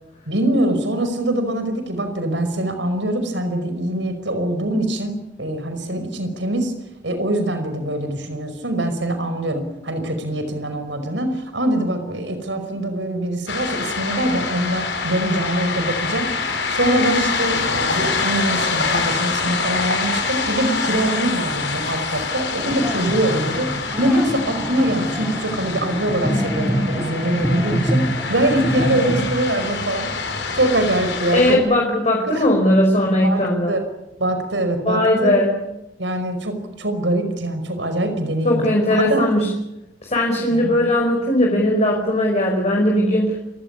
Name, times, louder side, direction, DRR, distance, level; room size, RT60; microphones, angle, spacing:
voice 1, 0.3-6.7 7.0-23.7 24.0-30.1 30.5-31.6 32.3-32.4 33.2-33.8 34.2-35.4 36.0-39.2 40.5-40.7, right 1 dB, 85° right, 8 dB, 5.3 m, -23 dB
sound 1, 13.5-31.6, left 4 dB, 80° left, 5.9 m, -25 dB
sound 2, 22.6-29.2, equal, 5° right, 2.8 m, -26 dB
voice 2, 31.3-33.7 34.9-35.6 38.5-39.5 40.0-43.4, left 1 dB, 35° left, 0 dB, 5.1 m, -18 dB
28.5 x 16.0 x 9.9 m, 0.92 s
head